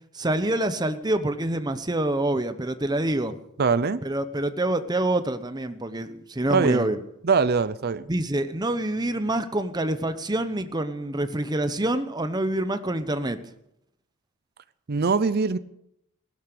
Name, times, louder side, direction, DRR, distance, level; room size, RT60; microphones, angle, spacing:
voice 1, 0.1-3.4 4.0-7.0 8.1-13.4, right 1 dB, 20° right, 10 dB, 0.9 m, -26 dB
voice 2, 3.6-4.0 6.5-6.9 7.2-8.1 14.9-15.6, right 5 dB, 45° right, 14 dB, 0.5 m, -22 dB
16.5 x 12.0 x 6.8 m, 0.79 s
head